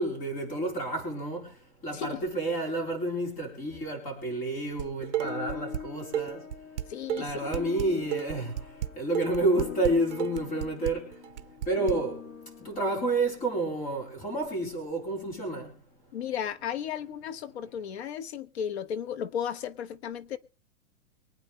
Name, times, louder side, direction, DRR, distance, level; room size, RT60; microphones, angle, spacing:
voice 1, 0.0-1.5 1.8-6.4 7.2-8.5 9.0-11.1 11.7-12.2 12.6-15.7, right 2 dB, 20° left, 4.3 m, -29 dB
Dishes pots and pans, 4.8-5.8 6.1-11.9, right 12 dB, 55° right, 0.9 m, -33 dB
sound 1, 5.2-13.9, left 7 dB, 65° left, 4.7 m, -44 dB
voice 2, 6.9-7.4 16.1-20.4, left 8 dB, 50° left, 1.2 m, -34 dB
24.0 x 8.8 x 3.3 m
hypercardioid pair, 175°, 43 cm